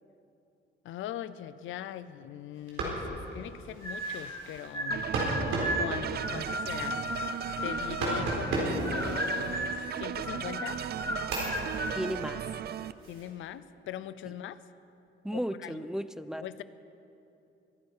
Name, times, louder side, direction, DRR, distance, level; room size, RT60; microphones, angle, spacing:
voice 1, 0.8-5.1 5.5-7.0 7.6-10.8 13.1-14.6 15.3-15.9 16.4-16.6, left 11 dB, 80° left, 15 dB, 0.6 m, -41 dB
sound 1, 2.5-10.2 10.7-13.3, right 2 dB, 90° right, 4.2 m, -36 dB
sound 2, 3.8-4.4 4.7-8.6 8.9-9.8 10.2-12.0, left 1 dB, 15° left, 1.9 m, -35 dB
sound 3, 4.9-12.9, right 10 dB, 55° right, 0.5 m, -37 dB
voice 2, 11.9-12.4 15.2-16.4, equal, 5° right, 13 dB, 0.5 m, -34 dB
23.5 x 11.5 x 4.9 m, 2.9 s
cardioid pair, 90°, 20 cm